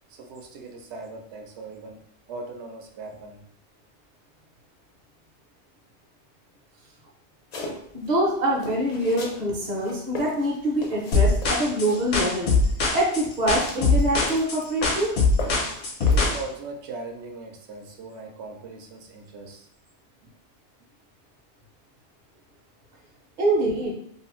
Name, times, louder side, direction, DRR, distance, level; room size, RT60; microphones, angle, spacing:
voice 1, 0.1-2.0 2.3-3.4 16.0-19.7 20.2-20.3, right 3 dB, 75° right, 3 dB, 0.8 m, -39 dB
sound 1, 7.5-8.1 8.6-9.4 9.7-12.4 13.0-15.1 15.4-16.4, left 2 dB, 50° left, 0.5 m, -37 dB
voice 2, 7.9-12.5 12.9-15.1 23.4-23.9, right 1 dB, 45° right, -3 dB, 0.7 m, -25 dB
sound 2, 11.1-16.4, left 3 dB, 75° left, 0.9 m, -22 dB
2.6 x 2.4 x 2.9 m, 0.67 s
omnidirectional pair, 1.2 m